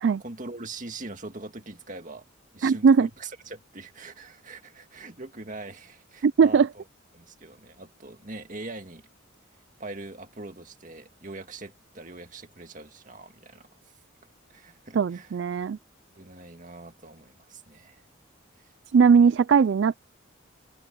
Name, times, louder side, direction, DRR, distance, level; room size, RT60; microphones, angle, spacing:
voice 1, 0.2-2.3 2.5-6.8 7.1-9.1 9.8-13.9 14.5-15.4 16.2-18.0 18.6-18.7, right 2 dB, 40° right, 2.0 m, -42 dB
voice 2, 2.6-3.1 6.2-6.7 14.9-15.8 18.9-19.9, right 6 dB, 60° right, 0.3 m, -19 dB
head